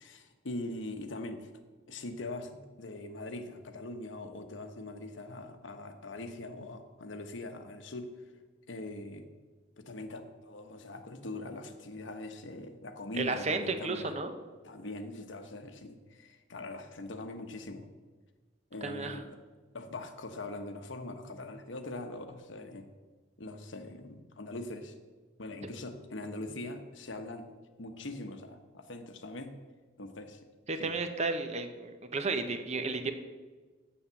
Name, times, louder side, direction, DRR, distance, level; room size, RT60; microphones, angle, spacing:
voice 1, 0.0-1.5 1.9-8.2 8.7-9.3 9.8-14.2 14.6-17.9 18.7-19.4 19.7-22.9 23.4-25.0 25.4-27.5 27.8-29.5 30.0-30.4 30.8-30.9, left 2 dB, 80° left, 7 dB, 1.0 m, -42 dB
voice 2, 13.2-14.3 18.8-19.2 30.7-33.1, right 3 dB, 35° right, 8 dB, 0.7 m, -33 dB
7.3 x 7.3 x 6.9 m, 1.3 s
head